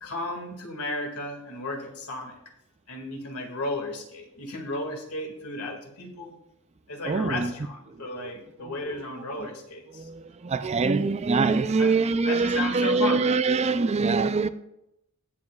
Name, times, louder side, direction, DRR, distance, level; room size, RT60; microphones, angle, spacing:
voice 1, 0.0-2.4 2.9-6.3 6.9-10.1 11.8-11.9 12.3-13.3, left 2 dB, 80° left, 2.2 m, -34 dB
voice 2, 7.0-7.5 8.0-8.3 8.6-8.9 9.4-9.5 9.9-14.5, right 4 dB, 30° right, 0.4 m, -24 dB
18.5 x 7.4 x 2.4 m
head